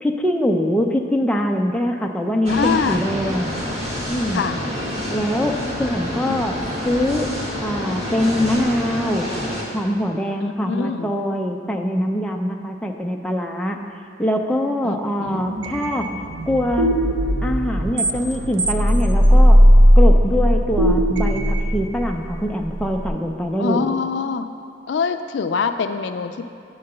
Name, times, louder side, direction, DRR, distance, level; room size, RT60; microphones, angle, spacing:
voice 1, 0.0-3.6 4.1-4.4 5.1-7.3 7.6-9.3 9.7-13.8 14.2-16.1 16.5-16.9 17.4-19.7 20.0-23.9, left 1 dB, 5° left, 1 dB, 0.4 m, -23 dB
voice 2, 2.5-3.1 4.3-4.6 6.2-6.5 10.4-11.1 14.8-15.5 23.6-24.5 24.9-26.4, left 5 dB, 70° left, 8 dB, 0.4 m, -24 dB
sound 1, 2.5-9.6, left 1 dB, 35° right, 1.5 m, -27 dB
sound 2, 15.3-23.1, equal, 80° right, 0.7 m, -17 dB
9.6 x 3.9 x 6.6 m, 2.4 s
head